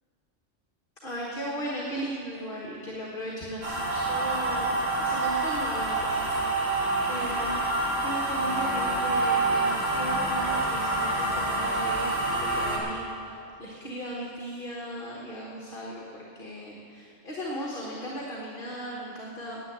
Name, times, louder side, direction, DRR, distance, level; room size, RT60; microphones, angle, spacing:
voice 1, 1.0-7.6 8.0-19.6, equal, 45° left, -3 dB, 1.5 m, -37 dB
sound 1, 3.6-12.8, right 2 dB, 55° right, 2.3 m, -27 dB
10.0 x 8.7 x 8.6 m, 2.5 s
omnidirectional pair, 1.3 m